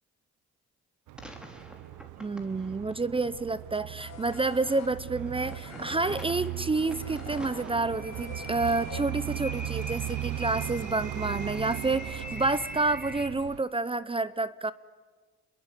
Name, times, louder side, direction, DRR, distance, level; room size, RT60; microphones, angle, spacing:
sound 1, 1.1-13.6, right 16 dB, 80° right, 0.7 m, -38 dB
sound 2, 1.2-3.5 4.0-13.3, equal, 5° right, 3.3 m, -43 dB
voice 1, 2.2-14.7, right 3 dB, 20° right, 16 dB, 0.7 m, -29 dB
sound 3, 4.0-9.5, left 8 dB, 60° left, 2.5 m, -47 dB
27.5 x 21.5 x 8.3 m, 1.4 s
cardioid pair, 90°, 30 cm